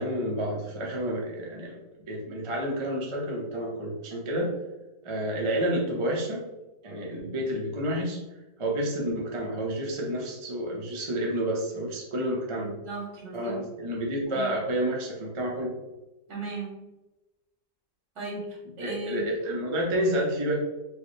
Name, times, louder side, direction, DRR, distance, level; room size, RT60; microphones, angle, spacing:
voice 1, 0.0-1.8 2.1-4.5 5.0-6.4 6.8-8.2 8.6-12.7 13.3-15.7 18.8-20.6, right 1 dB, 30° right, -2 dB, 0.5 m, -29 dB
voice 2, 12.6-13.6 14.3-14.5 16.3-16.8 18.2-19.2, right 2 dB, 80° right, -4 dB, 2.0 m, -36 dB
4.7 x 2.2 x 3.2 m, 1.0 s
omnidirectional pair, 1.7 m